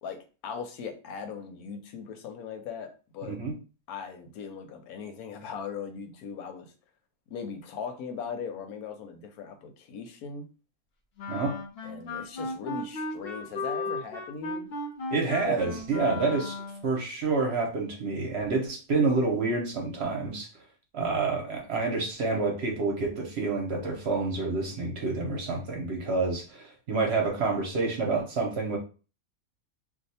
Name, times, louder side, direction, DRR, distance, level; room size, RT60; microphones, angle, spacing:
voice 1, 0.0-3.4 3.9-6.7 7.3-10.5 11.8-14.7 15.4-15.6, left 6 dB, 85° left, 6 dB, 1.1 m, -39 dB
voice 2, 3.2-3.5 11.3-11.6 15.1-20.5 20.9-28.8, right 3 dB, 55° right, 1 dB, 0.9 m, -28 dB
Wind instrument woodwind instrument, 11.2-16.9, left 2 dB, 60° left, 0.7 m, -36 dB
2.6 x 2.2 x 4.0 m, 0.35 s
omnidirectional pair, 1.5 m